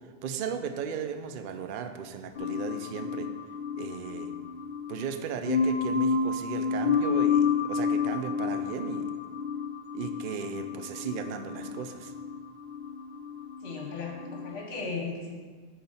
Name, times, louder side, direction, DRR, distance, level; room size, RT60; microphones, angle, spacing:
voice 1, 0.2-3.3 3.8-4.3 4.9-9.1 9.9-12.1, right 7 dB, 55° right, 7 dB, 0.6 m, -36 dB
sound 1, 2.4-14.6, left 5 dB, 55° left, 0.6 m, -30 dB
voice 2, 13.6-15.3, left 4 dB, 75° left, 0 dB, 1.5 m, -36 dB
8.4 x 4.0 x 5.6 m, 1.5 s
omnidirectional pair, 1.3 m